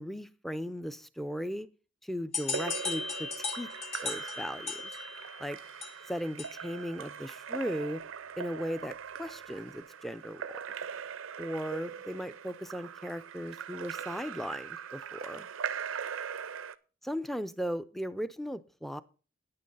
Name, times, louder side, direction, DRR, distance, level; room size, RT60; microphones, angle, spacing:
voice 1, 0.0-1.7 2.0-3.7 4.0-4.9 5.4-5.6 6.1-8.0 8.4-10.5 11.4-15.5 17.0-19.0, equal, ahead, 14 dB, 0.4 m, -37 dB
sound 1, 2.3-6.8, left 4 dB, 30° left, 1.2 m, -38 dB
Splash splatter / Drip / Trickle dribble, 2.4-16.8, right 7 dB, 75° right, 0.5 m, -41 dB
9.6 x 8.8 x 5.4 m, 0.36 s
head